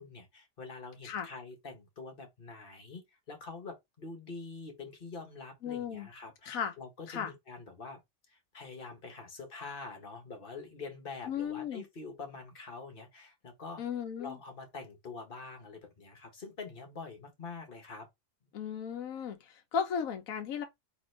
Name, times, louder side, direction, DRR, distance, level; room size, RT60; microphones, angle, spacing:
voice 1, 0.0-8.0 8.3-13.8 14.2-18.1, left 4 dB, 40° left, 1.6 m, -45 dB
voice 2, 5.6-6.1 6.5-6.7 7.1-7.3 11.3-11.8 13.8-14.4 18.5-20.6, left 7 dB, 75° left, 1.3 m, -35 dB
4.0 x 3.6 x 3.3 m
omnidirectional pair, 1.5 m